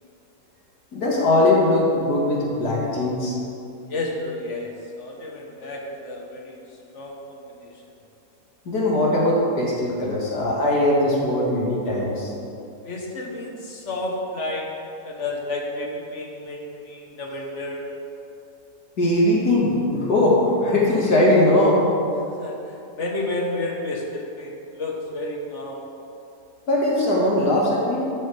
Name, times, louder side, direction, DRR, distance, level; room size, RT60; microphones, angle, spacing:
voice 1, 0.9-3.4 8.7-12.3 19.0-21.8 26.7-28.1, left 1 dB, 60° left, -4 dB, 2.4 m, -20 dB
voice 2, 3.9-7.8 12.8-14.7 15.0-17.9 22.4-25.8, left 2 dB, 45° left, 0 dB, 1.5 m, -31 dB
13.5 x 8.6 x 3.5 m, 2.7 s
omnidirectional pair, 1.9 m